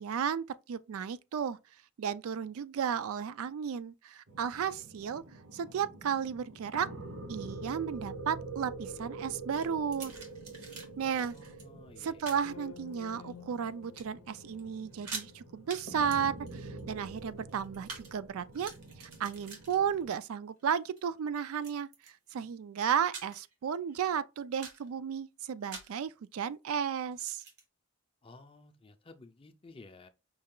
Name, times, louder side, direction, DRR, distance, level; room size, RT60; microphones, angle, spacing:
voice 1, 0.0-1.6 2.0-5.2 5.5-6.9 7.3-10.1 11.0-11.3 12.0-18.7 19.0-21.9 22.3-27.4, right 7 dB, 70° right, 0.3 m, -34 dB
sound 1, 4.3-20.2, right 3 dB, 55° right, 0.8 m, -46 dB
sound 2, 9.5-10.9 11.2-11.6 12.2-12.5 13.1-13.7 13.9-14.3 14.6-14.7 14.9-15.3 15.7-15.9 16.1-18.1 18.4-20.2 20.6-21.0 21.6-22.4 22.8-23.5 23.9-24.0 24.4-24.9 25.7-26.0 27.1-27.6, right 4 dB, 90° right, 1.3 m, -46 dB
voice 2, 11.0-12.6 13.1-13.3 28.2-30.1, left 3 dB, 25° left, 0.4 m, -54 dB
sound 3, 12.2-20.0, left 7 dB, 65° left, 0.6 m, -55 dB
5.4 x 2.3 x 3.6 m
head